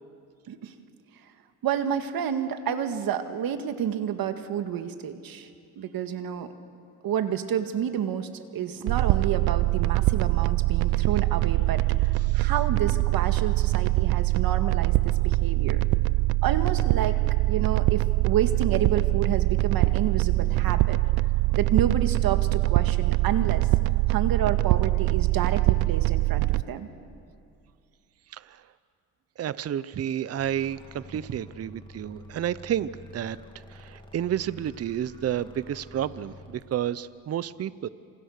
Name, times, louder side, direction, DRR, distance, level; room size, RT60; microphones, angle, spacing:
voice 1, 1.6-5.5 5.8-6.5 7.0-15.8 16.4-17.1 17.5-21.0 21.5-23.7 24.1-26.9, right 9 dB, 70° right, 8 dB, 1.9 m, -29 dB
sound 1, 8.9-26.6, right 20 dB, 85° right, 0.6 m, -23 dB
voice 2, 29.4-33.4 33.7-37.9, right 10 dB, 40° right, 17 dB, 0.7 m, -31 dB
sound 2, 30.4-36.6, left 1 dB, 15° left, 3.0 m, -48 dB
27.5 x 27.5 x 6.6 m, 2.4 s
cardioid pair, 105°, 37 cm